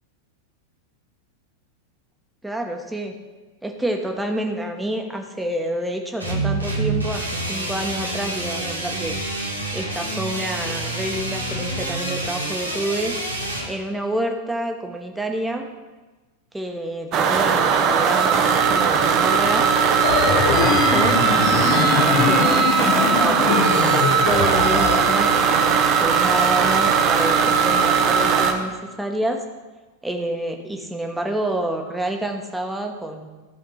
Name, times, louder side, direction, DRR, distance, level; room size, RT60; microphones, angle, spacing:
voice 1, 2.4-3.1 3.6-7.2 7.5-9.2 9.7-13.2 13.7-15.7 16.5-19.7 20.3-23.6 24.3-29.4 30.0-33.3, right 1 dB, 5° right, 3 dB, 1.3 m, -28 dB
sound 1, 6.2-13.7, right 2 dB, 85° right, 1.8 m, -27 dB
sound 2, 17.1-28.5, right 6 dB, 35° right, 1.1 m, -18 dB
sound 3, 20.0-25.0, left 7 dB, 45° left, 1.1 m, -23 dB
14.0 x 5.0 x 5.8 m, 1.2 s
figure-of-eight pair, 90°, 0 cm